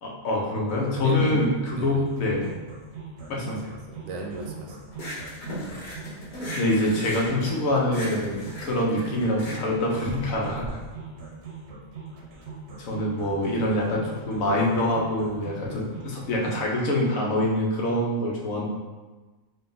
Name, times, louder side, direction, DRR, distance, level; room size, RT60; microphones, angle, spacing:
voice 1, 0.0-2.5 3.3-3.7 6.6-10.8 12.8-18.6, left 1 dB, 85° left, -2 dB, 1.2 m, -25 dB
sound 1, 0.7-16.7, right 4 dB, 60° right, 0.8 m, -41 dB
voice 2, 1.0-1.5 1.7-2.0 3.5-4.8, right 3 dB, 80° right, 0 dB, 1.1 m, -36 dB
sound 2, 4.9-10.7, left 1 dB, 45° left, 0.8 m, -37 dB
3.9 x 2.3 x 3.7 m, 1.2 s
omnidirectional pair, 1.4 m